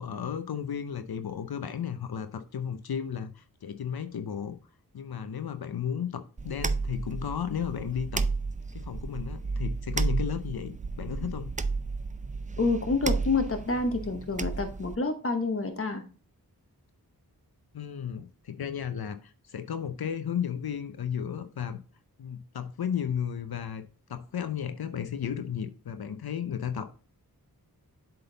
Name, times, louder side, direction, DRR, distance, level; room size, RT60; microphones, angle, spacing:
voice 1, 0.0-4.5 4.9-8.2 8.7-10.7 11.0-11.5 17.7-21.8 22.2-23.8 24.1-26.9, left 8 dB, 75° left, 0.6 m, -34 dB
sound 1, 6.4-15.0, right 4 dB, 20° right, 0.4 m, -32 dB
voice 2, 12.6-16.0, left 3 dB, 35° left, 1.1 m, -28 dB
7.9 x 3.9 x 3.9 m
wide cardioid pair, 60°, 38 cm